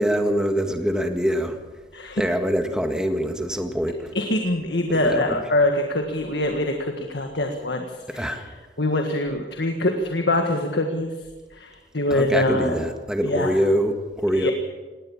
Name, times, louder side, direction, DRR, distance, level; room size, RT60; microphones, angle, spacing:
voice 1, 0.0-1.6 2.2-4.1 5.0-5.4 8.1-8.5 12.1-14.5, equal, 5° right, 5 dB, 1.8 m, -24 dB
voice 2, 4.1-8.4 8.8-11.1 11.5-12.8 13.2-13.6 14.3-14.5, left 1 dB, 65° left, 3 dB, 1.7 m, -24 dB
20.0 x 18.0 x 7.3 m, 1.3 s
head